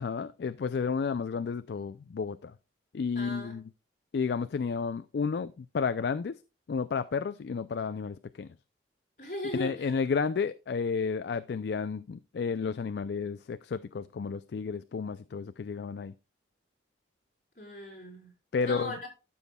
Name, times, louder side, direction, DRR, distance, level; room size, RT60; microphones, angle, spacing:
voice 1, 0.0-2.5 2.9-3.6 4.1-6.4 6.7-8.5 9.5-16.1 18.5-18.9, left 5 dB, 65° left, 0.4 m, -32 dB
voice 2, 3.2-3.6 9.2-10.0 17.6-18.3 18.6-19.1, left 1 dB, 45° left, 4.0 m, -38 dB
13.5 x 7.1 x 2.3 m
head